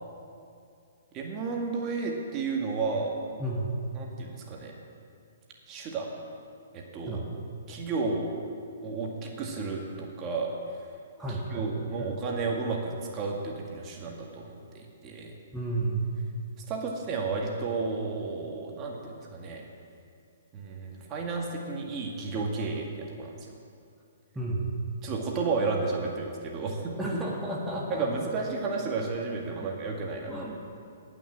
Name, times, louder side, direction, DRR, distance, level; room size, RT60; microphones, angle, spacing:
voice 1, 1.1-3.1 4.0-4.7 5.7-6.1 6.7-7.2 7.7-8.3 8.8-10.5 11.5-15.3 16.7-19.6 20.5-23.3 25.0-27.2 27.9-30.5, right 4 dB, 30° right, 0 dB, 2.0 m, -32 dB
voice 2, 3.4-3.8 7.1-7.2 11.2-12.2 15.5-16.1 24.3-24.7 27.0-28.1 29.5-29.7 30.3-30.6, right 2 dB, 5° right, -4 dB, 1.8 m, -32 dB
18.5 x 6.2 x 7.5 m, 2.4 s
figure-of-eight pair, 125°, 0 cm